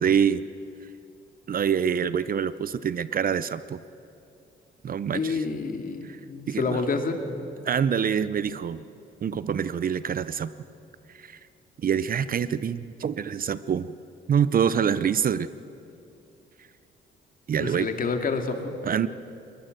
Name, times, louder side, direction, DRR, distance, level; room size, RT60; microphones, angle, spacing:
voice 1, 0.0-0.4 1.5-3.8 4.8-5.4 6.0-6.2 6.5-6.9 7.6-8.8 9.2-10.5 11.1-11.4 11.8-14.0 14.3-15.5 17.5-17.9 18.8-19.1, right 7 dB, 45° right, 15 dB, 0.7 m, -25 dB
voice 2, 5.1-7.2 17.6-18.7, left 4 dB, 45° left, 5 dB, 2.4 m, -28 dB
22.5 x 20.5 x 7.8 m, 2.7 s
cardioid pair, 90°, 20 cm